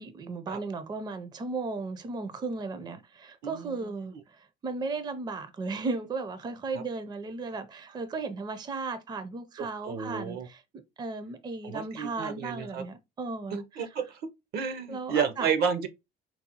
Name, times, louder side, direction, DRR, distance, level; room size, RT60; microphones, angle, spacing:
voice 1, 0.0-10.6 11.0-13.9 14.9-15.5, right 3 dB, 25° right, 0.4 m, -35 dB
voice 2, 3.4-4.2 6.7-6.8 9.6-10.5 11.6-12.8 13.5-14.2 14.5-15.9, right 7 dB, 70° right, 0.6 m, -31 dB
3.9 x 2.0 x 2.8 m
cardioid pair, 110°, 17 cm